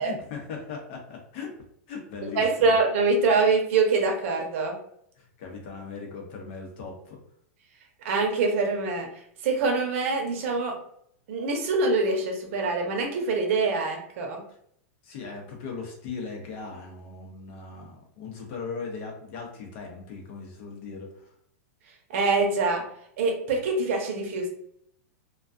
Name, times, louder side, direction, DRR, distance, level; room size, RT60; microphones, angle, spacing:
voice 1, 0.0-1.5 1.9-2.7 5.2-7.2 15.0-21.3, left 5 dB, 50° left, 1 dB, 0.8 m, -38 dB
voice 2, 2.4-4.7 8.0-9.1 9.4-10.7 11.3-14.4 22.1-22.8 23.2-24.5, right 3 dB, 55° right, 2 dB, 0.7 m, -24 dB
2.3 x 2.2 x 2.5 m, 0.68 s
supercardioid pair, 150°, 8 cm